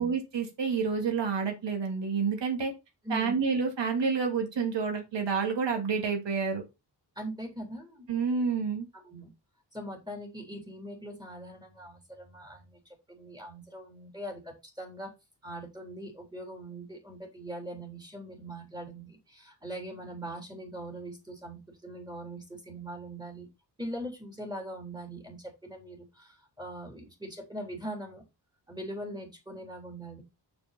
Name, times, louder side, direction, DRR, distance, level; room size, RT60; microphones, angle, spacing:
voice 1, 0.0-2.7 3.1-6.6 8.1-8.9, right 5 dB, 80° right, 3 dB, 2.4 m, -29 dB
voice 2, 3.0-3.5 7.2-8.1 8.9-9.3 9.7-15.1 15.4-23.5 23.8-28.2 28.7-30.2, right 1 dB, 10° right, 2 dB, 3.6 m, -41 dB
7.0 x 6.9 x 4.2 m, 0.24 s
wide cardioid pair, 115°, 42 cm